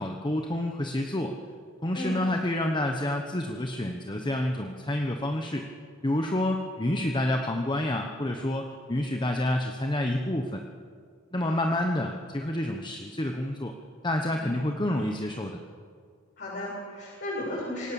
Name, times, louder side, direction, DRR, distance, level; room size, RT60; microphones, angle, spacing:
voice 1, 0.0-1.3 1.8-5.7 6.0-10.6 11.3-13.7 14.0-15.6, left 1 dB, 25° left, 3 dB, 1.1 m, -28 dB
voice 2, 16.4-17.9, left 1 dB, 55° left, -7 dB, 7.2 m, -35 dB
26.5 x 18.5 x 7.2 m, 2.1 s
head